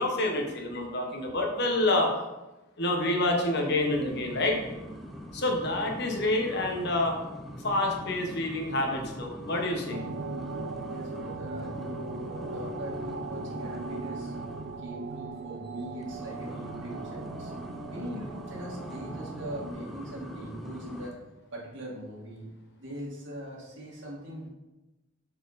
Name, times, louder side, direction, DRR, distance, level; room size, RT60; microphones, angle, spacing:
voice 1, 0.0-2.1 2.8-4.6 5.3-7.2 7.6-10.0, left 1 dB, 60° left, 2 dB, 1.2 m, -27 dB
sound 1, 3.7-14.9 15.9-21.1, equal, ahead, 0.5 m, -43 dB
sound 2, 9.9-19.7, right 3 dB, 85° right, 0.5 m, -39 dB
voice 2, 10.9-14.3 14.8-17.5 17.9-21.2 21.5-22.5 22.8-24.5, equal, 65° right, -4 dB, 2.0 m, -41 dB
6.5 x 4.5 x 4.1 m, 1.0 s
head